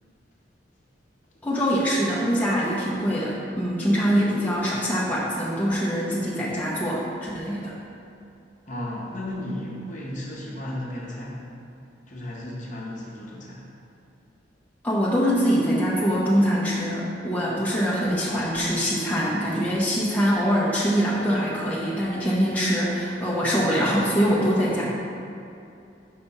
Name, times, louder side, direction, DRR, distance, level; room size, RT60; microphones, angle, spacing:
voice 1, 1.4-7.7 14.8-24.8, equal, 10° left, -7 dB, 0.7 m, -23 dB
voice 2, 8.7-11.4 12.1-13.6 24.8-24.9, left 1 dB, 40° left, -4 dB, 0.9 m, -34 dB
5.6 x 3.4 x 5.4 m, 2.6 s
head